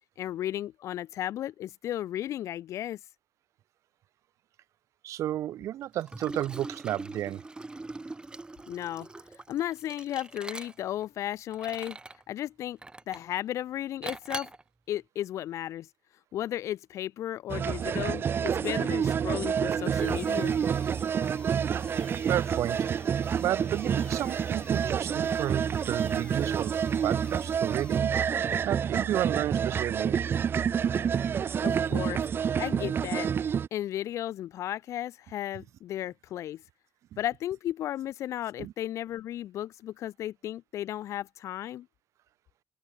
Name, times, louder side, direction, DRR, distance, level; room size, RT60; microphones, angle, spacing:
voice 1, 0.2-3.0 8.7-9.1 9.5-12.0 12.3-12.8 13.1-14.5 14.9-15.9 16.3-20.6 31.6-32.2 32.6-33.3 33.7-36.6 37.2-41.9, left 12 dB, 85° left, 1.1 m, -34 dB
voice 2, 5.0-7.4 22.3-22.9 23.4-28.1 28.6-30.2 37.1-37.2 38.6-38.7, right 12 dB, 90° right, 1.2 m, -32 dB
Liquid, 6.0-11.0 11.5-12.2 12.8-13.3 14.0-14.6, right 2 dB, 20° right, 5.5 m, -42 dB
sound 1, 17.5-33.7, right 7 dB, 50° right, 0.6 m, -28 dB
sound 2, 20.0-28.0, left 3 dB, 20° left, 7.4 m, -51 dB
open air
cardioid pair, 120°, 5 cm